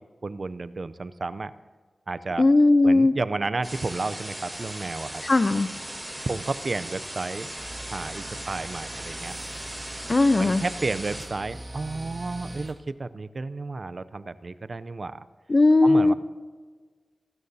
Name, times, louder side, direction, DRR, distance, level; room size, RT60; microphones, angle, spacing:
voice 1, 0.2-1.5 2.1-2.5 2.8-5.1 6.2-7.5 7.9-9.3 10.4-15.2 15.8-16.1, right 3 dB, 60° right, 15 dB, 0.5 m, -32 dB
voice 2, 2.4-3.1 5.2-5.7 10.1-10.6 15.5-16.1, left 2 dB, 45° left, 13 dB, 0.6 m, -18 dB
sound 1, 3.6-11.3, right 1 dB, 15° right, 5.2 m, -38 dB
sound 2, 7.6-12.7, right 1 dB, 40° right, 2.1 m, -42 dB
26.0 x 13.0 x 2.8 m, 1.5 s
cardioid pair, 55°, 0 cm